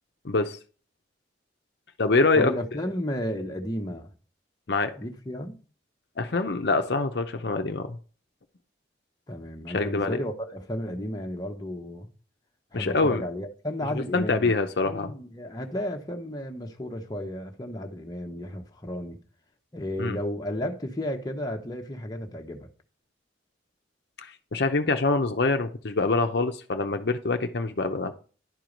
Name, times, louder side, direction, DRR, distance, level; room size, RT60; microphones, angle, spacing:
voice 1, 0.2-0.6 2.0-2.5 4.7-4.9 6.2-8.0 9.7-10.2 12.7-13.2 14.1-15.1 20.0-20.2 24.2-28.1, left 3 dB, 60° left, 0.7 m, -25 dB
voice 2, 2.3-4.1 5.0-5.6 9.3-12.1 12.7-14.5 14.8-19.2 19.7-22.7, left 1 dB, 20° left, 1.0 m, -33 dB
11.0 x 4.6 x 5.2 m
head